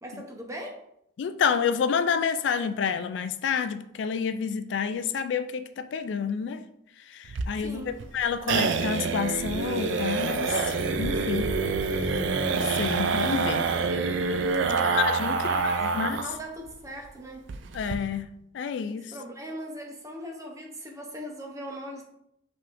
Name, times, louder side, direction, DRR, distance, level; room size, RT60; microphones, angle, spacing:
voice 1, 0.0-0.9 7.5-8.0 14.6-15.0 15.5-15.8 16.1-17.5 19.1-22.0, equal, 15° right, 0.7 m, -40 dB
voice 2, 1.2-6.6 7.1-11.5 12.5-13.7 14.9-16.2 17.7-18.3 18.5-19.1, left 6 dB, 70° left, 0.3 m, -29 dB
sound 1, 7.3-16.4 16.7-16.8 17.1-17.2 17.5-17.9, right 4 dB, 75° right, 0.4 m, -27 dB
5.5 x 3.5 x 2.5 m
head